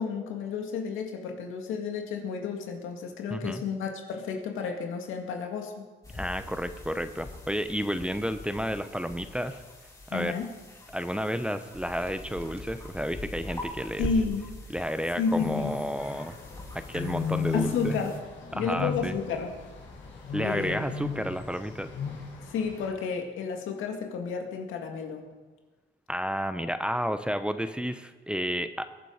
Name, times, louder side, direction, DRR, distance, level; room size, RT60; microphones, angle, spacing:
voice 1, 0.0-5.8 10.1-10.5 14.0-14.5 15.2-15.7 17.5-18.2 18.5-19.5 20.4-20.8 21.1-21.2 22.5-25.3, left 5 dB, 85° left, 3 dB, 2.1 m, -31 dB
voice 2, 3.3-3.6 6.1-9.6 10.1-10.3 10.9-14.1 14.7-16.4 16.7-18.0 18.5-19.1 20.3-21.9 26.1-28.9, equal, 5° right, 10 dB, 0.7 m, -31 dB
sound 1, 6.0-18.2, left 2 dB, 20° left, 5.4 m, -46 dB
sound 2, 11.7-21.9, right 2 dB, 35° right, 3.9 m, -45 dB
sound 3, 15.2-22.9, left 6 dB, 70° left, 5.6 m, -36 dB
22.0 x 7.6 x 5.0 m, 1.3 s
cardioid pair, 90°, 20 cm